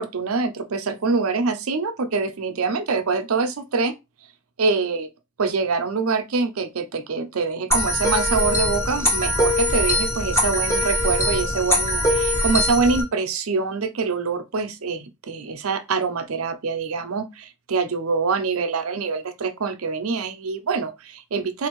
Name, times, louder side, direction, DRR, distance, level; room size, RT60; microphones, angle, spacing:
voice 1, 0.0-3.9 4.6-5.1 5.4-21.7, right 4 dB, 75° right, 0.6 m, -25 dB
sound 1, 7.7-13.0, left 1 dB, 15° left, 1.1 m, -22 dB
4.1 x 2.6 x 3.0 m
head